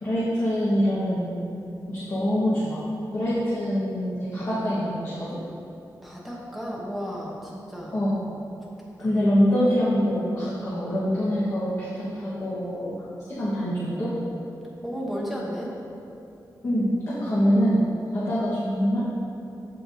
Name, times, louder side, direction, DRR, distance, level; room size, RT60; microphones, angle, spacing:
voice 1, 0.0-1.4 1.9-2.8 3.1-5.4 7.9-8.2 9.0-13.0 13.3-14.1 16.6-19.0, equal, 40° left, -10 dB, 1.4 m, -24 dB
voice 2, 6.0-8.0 8.8-9.1 14.8-15.8 17.1-17.3, equal, ahead, -5 dB, 1.0 m, -34 dB
13.5 x 4.6 x 2.8 m, 2.8 s
wide cardioid pair, 180°, 7 cm